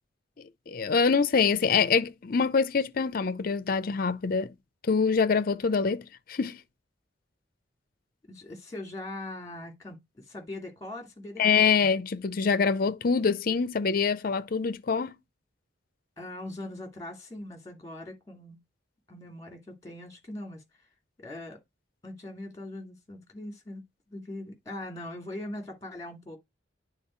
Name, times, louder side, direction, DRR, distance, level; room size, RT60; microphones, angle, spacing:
voice 1, 0.4-4.5 4.9-6.6 11.4-15.1, left 5 dB, 50° left, 0.5 m, -25 dB
voice 2, 8.3-11.7 16.2-18.6 19.1-20.6 21.2-21.6 22.0-23.8 24.1-26.4, left 1 dB, 20° left, 2.3 m, -41 dB
9.0 x 3.8 x 4.4 m
head